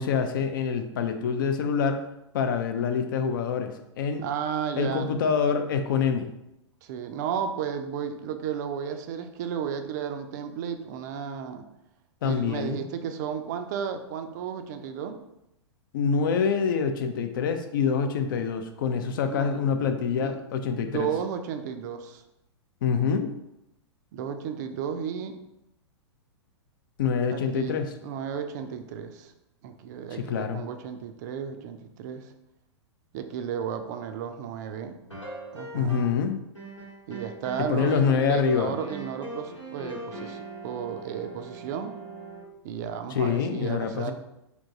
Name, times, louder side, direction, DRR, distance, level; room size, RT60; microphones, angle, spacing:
voice 1, 0.0-2.0 2.3-4.2 4.8-6.3 12.2-12.8 15.9-21.1 22.8-23.3 27.0-27.9 30.3-30.6 35.7-36.4 37.6-38.8 43.1-44.1, left 6 dB, 45° left, 7 dB, 0.4 m, -26 dB
voice 2, 4.2-5.2 6.8-11.6 12.2-15.2 18.9-19.9 20.2-22.2 24.1-25.4 27.3-29.3 29.6-32.3 33.1-35.0 35.5-36.0 37.1-42.0 42.6-44.1, right 7 dB, 40° right, 8 dB, 0.4 m, -33 dB
sound 1, 35.1-36.3 36.5-42.4, right 2 dB, 90° left, 1.0 m, -41 dB
3.4 x 2.8 x 2.6 m, 0.86 s
figure-of-eight pair, 105°, 15 cm